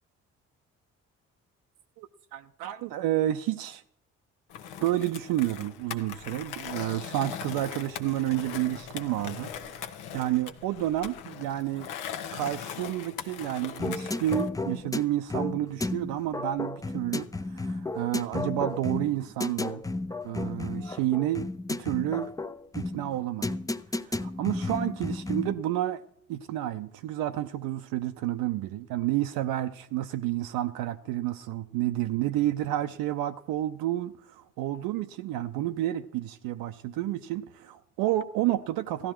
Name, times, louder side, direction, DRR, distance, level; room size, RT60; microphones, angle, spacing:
voice 1, 2.0-3.8 4.8-9.5 10.1-11.9 12.3-19.8 20.2-22.3 22.7-23.6 24.0-26.0 26.3-39.1, right 13 dB, 65° right, 8 dB, 0.6 m, -30 dB
Skateboard, 4.5-14.5, left 8 dB, 70° left, 1.1 m, -40 dB
sound 1, 13.8-25.6, left 2 dB, 10° left, 0.6 m, -33 dB
15.5 x 12.0 x 4.4 m, 0.71 s
figure-of-eight pair, 45°, 38 cm